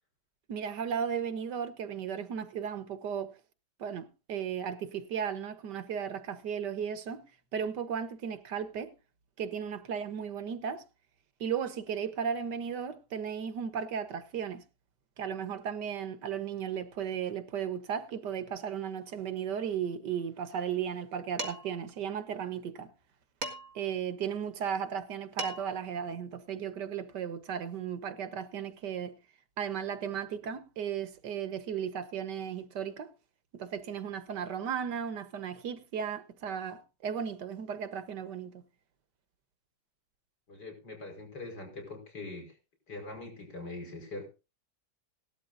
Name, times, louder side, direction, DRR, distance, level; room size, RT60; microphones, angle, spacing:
voice 1, 0.5-3.3 3.8-7.2 7.5-8.9 9.4-10.8 11.4-14.6 15.2-22.9 23.7-29.1 29.6-33.1 33.5-38.5, right 7 dB, 90° right, 1.8 m, -35 dB
Dishes pots and pans, 21.4-21.8 23.4-23.9 25.0-25.1 25.4-25.8, right 2 dB, 40° right, 2.0 m, -38 dB
voice 2, 40.5-42.6 42.9-44.3, left 2 dB, 90° left, 5.7 m, -42 dB
18.5 x 12.5 x 2.6 m
omnidirectional pair, 1.8 m